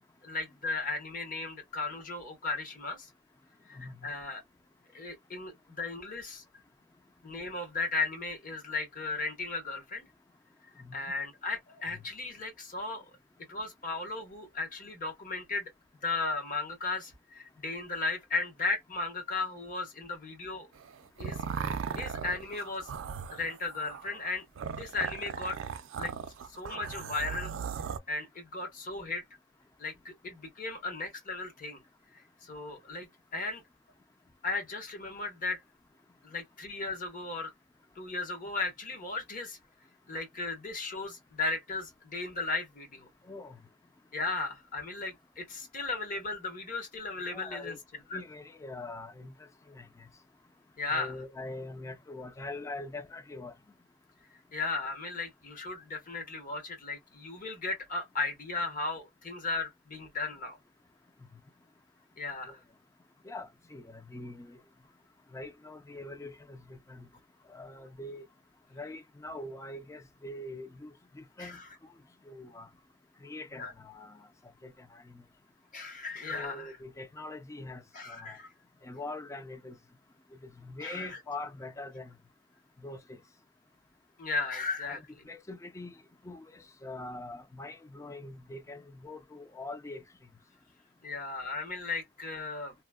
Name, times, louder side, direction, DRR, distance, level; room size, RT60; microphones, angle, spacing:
voice 1, 0.2-3.1 3.7-4.4 4.9-6.4 7.2-10.0 10.9-13.0 13.5-15.7 16.0-20.7 21.2-21.4 22.0-22.9 23.3-24.4 24.7-25.6 26.0-26.1 26.5-27.5 28.1-29.2 29.8-31.8 32.1-33.1 33.3-33.6 34.4-35.6 36.2-37.5 37.9-39.6 40.1-43.1 44.1-47.8 48.1-48.2 50.8-51.1 54.5-60.6 62.2-62.6 71.4-71.7 73.6-73.7 75.7-76.8 77.9-78.5 80.8-81.2 84.2-85.0 91.0-92.7, left 3 dB, 45° left, 1.1 m, -36 dB
voice 2, 3.7-4.1 10.8-11.0 11.9-12.0 43.2-43.6 47.3-47.8 48.1-50.1 50.9-53.5 62.5-62.6 63.2-64.6 65.3-67.1 67.5-68.2 68.7-71.6 72.3-72.7 73.2-74.3 74.6-75.2 76.3-77.8 78.1-78.4 78.8-79.8 80.4-82.2 82.8-83.2 84.8-90.0, left 2 dB, 15° left, 0.4 m, -43 dB
sound 1, 20.8-28.0, right 6 dB, 90° right, 0.4 m, -38 dB
3.0 x 2.1 x 2.2 m
head